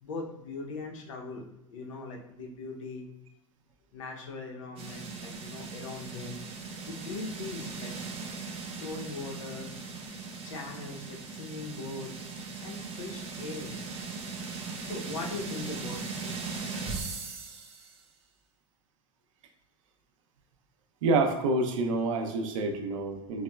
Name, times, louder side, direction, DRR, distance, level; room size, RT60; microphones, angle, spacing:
voice 1, 0.0-3.1 3.9-6.4 6.8-7.9 8.8-9.8 10.4-12.3 12.6-13.8 14.8-16.3, left 3 dB, 80° left, 1 dB, 0.6 m, -40 dB
sound 1, 4.8-18.0, right 4 dB, 35° right, 0.6 m, -39 dB
voice 2, 21.0-23.4, right 3 dB, 80° right, 4 dB, 0.5 m, -27 dB
3.9 x 2.1 x 2.2 m, 0.85 s
supercardioid pair, 115°, 16 cm